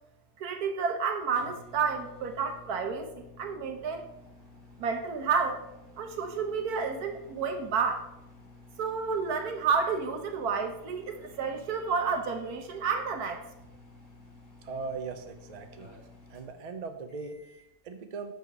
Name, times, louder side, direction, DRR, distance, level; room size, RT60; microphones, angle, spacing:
voice 1, 0.4-4.0 4.8-5.6 6.0-8.0 8.8-13.4, right 5 dB, 85° right, 5 dB, 1.5 m, -30 dB
sound 1, 0.8-17.7, left 2 dB, 65° left, 2.8 m, -53 dB
voice 2, 14.6-16.0 16.3-18.3, right 4 dB, 40° right, 6 dB, 0.6 m, -39 dB
6.2 x 5.2 x 6.1 m, 0.87 s
omnidirectional pair, 1.6 m